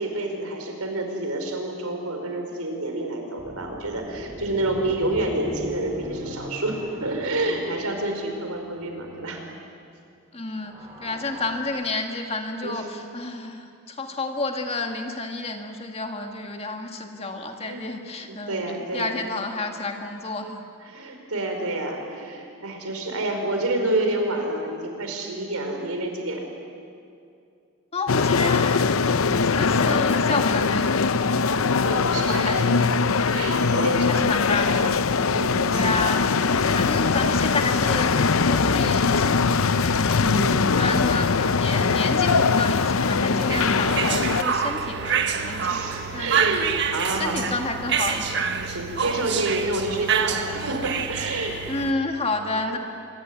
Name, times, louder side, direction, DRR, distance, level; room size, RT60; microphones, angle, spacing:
voice 1, 0.0-9.4 12.6-12.8 17.6-17.8 18.3-19.2 20.8-26.5 31.6-32.7 33.3-34.3 35.1-36.4 40.2-40.7 45.6-47.5 48.6-51.6 52.6-52.8, right 2 dB, 90° right, 3 dB, 5.0 m, -28 dB
sound 1, 3.4-9.4 10.4-11.7, equal, 20° right, 4.2 m, -40 dB
voice 2, 10.3-20.7 27.9-29.0 29.4-31.1 32.3-32.9 34.1-34.8 35.7-38.2 38.4-40.4 40.8-45.8 46.1-46.7 47.2-48.4 51.7-52.8, left 2 dB, 25° left, 4 dB, 2.0 m, -30 dB
sound 2, 28.1-44.4, left 4 dB, 75° left, 0.7 m, -21 dB
sound 3, 43.5-51.9, right 6 dB, 50° right, 1.5 m, -27 dB
26.5 x 23.0 x 9.8 m, 2.5 s
head